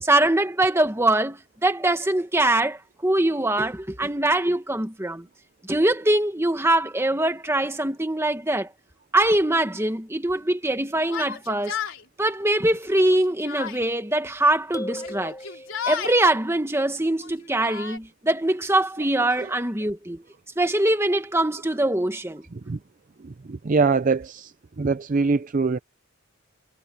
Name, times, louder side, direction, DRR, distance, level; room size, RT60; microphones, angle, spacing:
voice 1, 0.0-5.2 5.6-8.7 9.1-11.8 12.2-15.4 15.8-20.2 20.6-22.4, right 1 dB, 10° right, 1.6 m, -23 dB
Yell, 11.0-12.0 12.9-13.8 14.8-16.2 17.1-18.0, left 7 dB, 65° left, 4.2 m, -33 dB
sound 1, 14.7-16.3, left 1 dB, 15° left, 6.6 m, -37 dB
voice 2, 23.2-25.8, right 4 dB, 40° right, 0.5 m, -24 dB
head